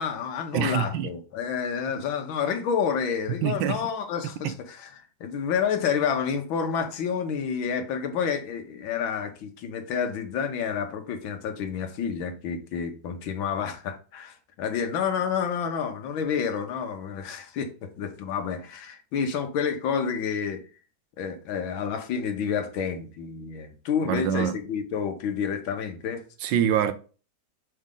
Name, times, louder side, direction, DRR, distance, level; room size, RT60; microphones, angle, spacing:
voice 1, 0.0-20.6 21.2-26.2, left 7 dB, 85° left, 1.8 m, -29 dB
voice 2, 0.5-1.1 3.4-3.8 4.4-4.5 24.0-24.6 26.4-26.9, right 9 dB, 80° right, 1.3 m, -25 dB
6.3 x 4.5 x 3.8 m
omnidirectional pair, 2.1 m